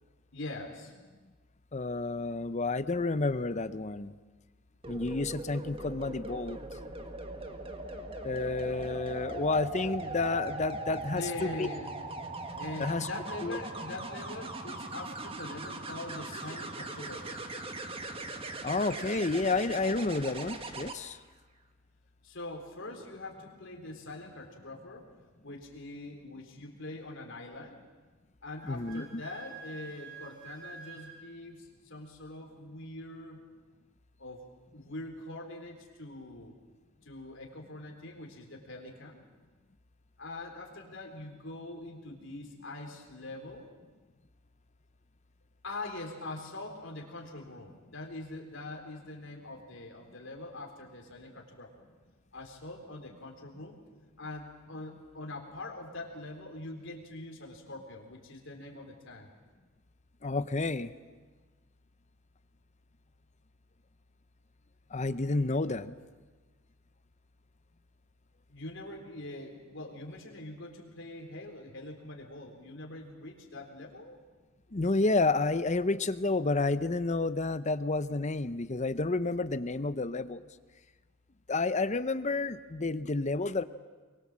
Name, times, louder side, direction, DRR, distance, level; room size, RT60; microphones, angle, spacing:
voice 1, 0.3-0.9 11.1-11.9 12.6-17.4 22.2-25.1 25.4-27.8 28.4-33.4 34.2-36.5 37.0-39.2 40.2-43.7 45.6-51.9 52.3-53.8 54.2-59.3 68.5-74.2, left 2 dB, 60° left, 1 dB, 4.1 m, -43 dB
voice 2, 1.7-4.1 4.9-6.6 8.2-11.7 12.8-13.1 13.4-13.6 18.6-21.2 28.7-29.1 60.2-60.9 64.9-65.9 74.7-80.4 81.5-83.6, left 3 dB, 35° left, 13 dB, 0.7 m, -30 dB
sound 1, 4.8-21.0 22.9-23.1, right 2 dB, 25° right, 1.7 m, -40 dB
Wind instrument woodwind instrument, 28.6-31.2, right 6 dB, 55° right, 7.2 m, -48 dB
24.0 x 23.0 x 7.5 m, 1.3 s
head